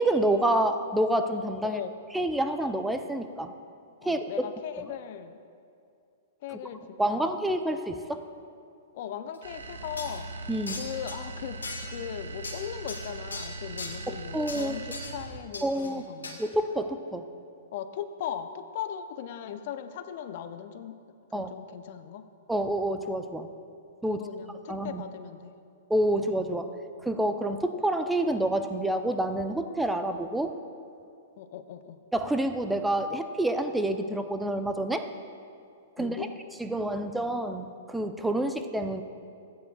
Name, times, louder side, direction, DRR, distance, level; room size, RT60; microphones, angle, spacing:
voice 1, 0.0-1.8 2.1-3.5 4.0-4.3 6.5-6.6 7.0-8.2 10.5-10.8 14.1-14.7 15.6-16.0 16.4-17.2 21.3-21.5 22.5-23.5 24.0-24.2 24.7-25.0 25.9-26.7 27.0-30.5 32.1-35.1 36.0-36.3 36.6-39.0, right 1 dB, 5° right, 8 dB, 0.6 m, -28 dB
voice 2, 1.6-1.9 4.0-5.4 6.4-7.3 8.9-10.3 10.7-16.4 17.7-21.0 21.3-22.3 24.1-25.5 26.1-26.2 31.4-32.0 36.0-36.3, left 9 dB, 55° left, 10 dB, 0.6 m, -38 dB
sound 1, 9.3-9.4 10.0-10.2 10.7-11.2 11.6-12.1 12.4-14.0 14.5-15.2 15.5-15.9 16.2-16.4, left 3 dB, 90° left, 1.6 m, -39 dB
sound 2, 9.4-15.6, right 2 dB, 75° right, 0.9 m, -40 dB
15.5 x 9.3 x 2.3 m, 2.4 s
hypercardioid pair, 115°, 0 cm